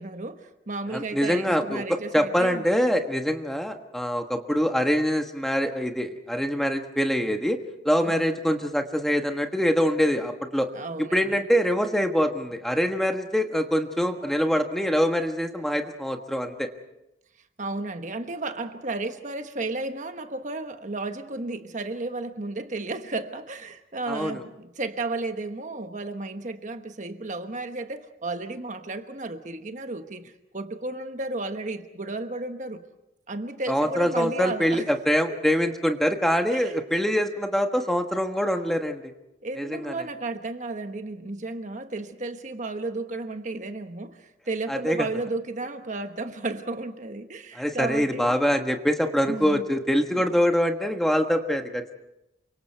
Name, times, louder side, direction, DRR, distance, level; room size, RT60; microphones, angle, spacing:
voice 1, 0.0-2.6 8.1-8.3 10.7-11.4 17.6-32.8 33.3-34.9 36.5-36.8 39.4-48.4 49.3-49.7, right 2 dB, 40° right, 7 dB, 1.2 m, -33 dB
voice 2, 0.9-7.6 7.8-10.7 11.1-16.7 24.1-24.4 33.7-39.1 39.6-39.9 44.7-45.1 47.5-52.0, equal, ahead, 5 dB, 1.4 m, -24 dB
28.5 x 25.0 x 4.6 m, 0.89 s
head